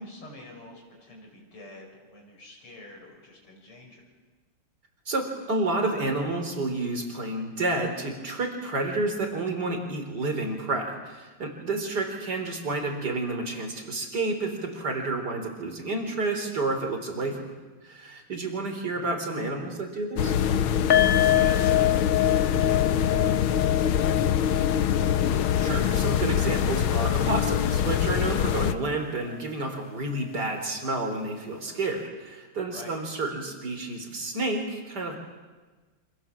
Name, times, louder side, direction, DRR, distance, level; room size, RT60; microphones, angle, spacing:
voice 1, 0.0-4.0 17.2-17.4 18.9-19.1 21.2-24.0 32.7-33.0, left 1 dB, 90° left, 0 dB, 6.8 m, -45 dB
voice 2, 5.1-17.4 17.8-20.4 25.6-35.2, right 2 dB, 50° right, 4 dB, 4.6 m, -30 dB
sound 1, 20.2-28.7, left 9 dB, 70° left, 1.8 m, -24 dB
sound 2, 20.9-28.1 28.4-28.6 28.9-29.0, left 13 dB, 40° left, 1.7 m, -27 dB
28.0 x 26.5 x 7.5 m, 1.3 s
omnidirectional pair, 2.4 m